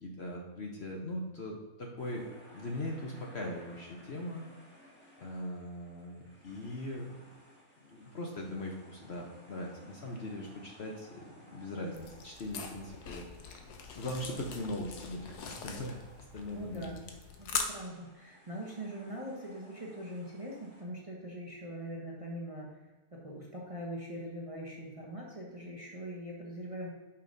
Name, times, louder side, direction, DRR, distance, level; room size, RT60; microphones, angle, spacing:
voice 1, 0.0-4.4 5.2-7.1 7.8-13.2 13.9-16.0 16.3-17.0, left 1 dB, 50° left, 0 dB, 1.0 m, -40 dB
sound 1, 2.0-20.8, equal, 10° left, 1.3 m, -59 dB
sound 2, 11.9-17.6, left 6 dB, 80° left, 1.3 m, -42 dB
voice 2, 16.5-17.0 17.4-22.7 23.1-26.9, right 1 dB, 25° right, -3 dB, 0.9 m, -42 dB
8.4 x 5.7 x 2.7 m, 1.2 s
omnidirectional pair, 1.7 m